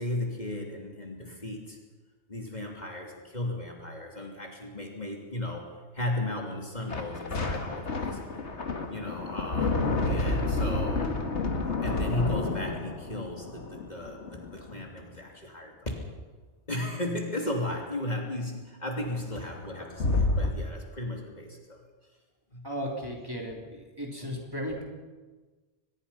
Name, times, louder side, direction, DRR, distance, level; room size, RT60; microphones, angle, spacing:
voice 1, 0.0-1.8 2.3-8.4 8.9-11.1 11.8-15.9 16.7-21.9 22.5-22.7 23.0-23.1 24.2-24.4, left 1 dB, 40° left, 1 dB, 3.1 m, -35 dB
sound 1, 6.9-14.8 19.0-19.1 19.3-20.5, left 3 dB, 85° left, 2.0 m, -30 dB
voice 2, 22.6-24.8, equal, 20° right, -1 dB, 3.5 m, -35 dB
24.0 x 21.0 x 5.7 m, 1.3 s
omnidirectional pair, 1.1 m